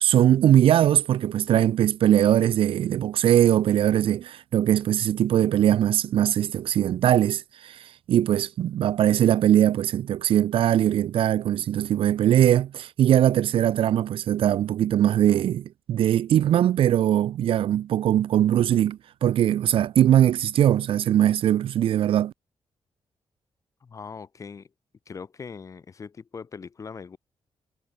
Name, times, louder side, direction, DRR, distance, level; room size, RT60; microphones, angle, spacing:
voice 1, 0.0-22.3, right 11 dB, 70° right, 0.5 m, -21 dB
voice 2, 23.8-24.7 25.1-27.2, left 5 dB, 35° left, 1.4 m, -40 dB
wide cardioid pair, 160°, 10 cm